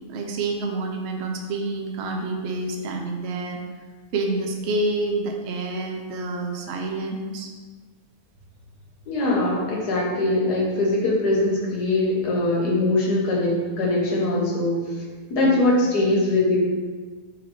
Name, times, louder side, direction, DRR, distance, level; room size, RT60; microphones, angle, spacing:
voice 1, 0.1-3.6 4.1-7.5 15.4-15.7, right 2 dB, 65° right, 2 dB, 0.6 m, -28 dB
voice 2, 9.0-14.8 15.3-16.6, left 2 dB, 90° left, -3 dB, 1.5 m, -22 dB
3.8 x 3.0 x 4.6 m, 1.4 s
omnidirectional pair, 1.7 m